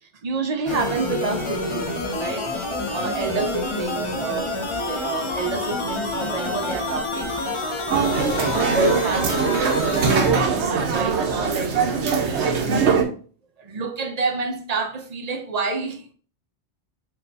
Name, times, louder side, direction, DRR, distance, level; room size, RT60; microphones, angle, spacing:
voice 1, 0.0-2.5 2.9-7.3 7.9-8.2 8.5-12.9 13.6-16.1, right 4 dB, 45° right, 0.6 m, -29 dB
sound 1, 0.7-10.3, left 2 dB, 30° left, 0.7 m, -28 dB
sound 2, 7.9-13.0, right 5 dB, 75° right, 1.0 m, -21 dB
4.5 x 2.3 x 3.9 m
omnidirectional pair, 1.2 m